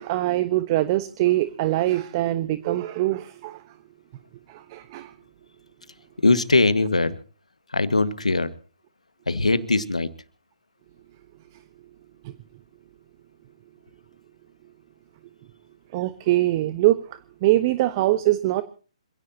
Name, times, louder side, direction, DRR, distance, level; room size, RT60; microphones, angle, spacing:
voice 1, 0.0-3.6 4.5-5.1 12.2-12.3 15.9-17.0 17.4-18.6, right 16 dB, 35° right, 13 dB, 1.2 m, -23 dB
voice 2, 6.2-7.2 7.7-8.5 9.3-10.1, left 3 dB, 85° left, 12 dB, 1.8 m, -21 dB
27.0 x 17.0 x 2.9 m, 0.38 s
figure-of-eight pair, 135°, 4 cm